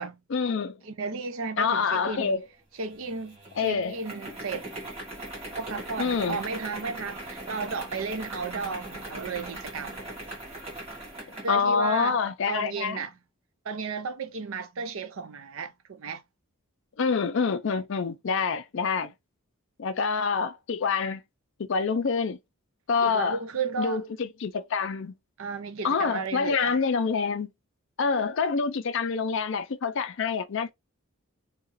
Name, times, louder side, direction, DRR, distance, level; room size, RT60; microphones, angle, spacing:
voice 1, 0.3-0.8 1.6-2.4 3.6-3.9 6.0-6.4 11.3-13.0 17.0-19.1 19.8-21.2 21.6-22.4 22.9-23.4 23.8-25.1 25.8-27.5 28.0-30.7, left 5 dB, 55° left, 0.4 m, -26 dB
voice 2, 0.8-2.3 2.8-4.7 5.6-10.0 11.4-12.2 12.5-13.1 13.6-16.2 23.0-24.0 25.4-26.8, right 4 dB, 65° right, 0.5 m, -33 dB
sound 1, 2.8-11.6, right 1 dB, 25° right, 1.3 m, -40 dB
2.8 x 2.4 x 2.9 m
head